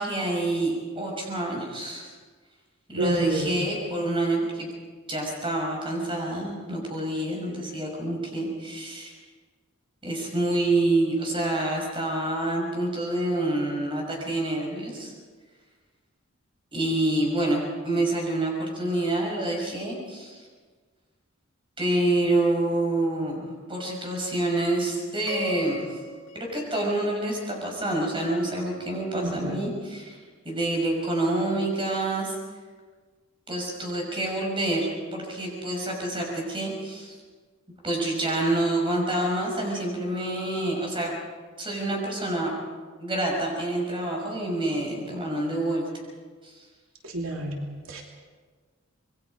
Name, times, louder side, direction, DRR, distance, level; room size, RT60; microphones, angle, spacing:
voice 1, 0.0-2.1 2.9-4.7 5.1-9.1 10.0-15.1 16.7-20.4 21.8-25.9 26.3-30.2 30.4-32.3 33.5-37.1 37.8-41.1 41.6-42.5 43.0-45.9 46.4-46.5, right 1 dB, 25° right, 0 dB, 6.0 m, -27 dB
voice 2, 3.0-3.6 29.1-29.5 47.1-47.6 47.9-48.0, right 1 dB, 85° right, 0 dB, 2.9 m, -28 dB
sound 1, 25.3-27.6, left 1 dB, 65° left, 7.2 m, -37 dB
26.5 x 21.5 x 5.2 m, 1.5 s
head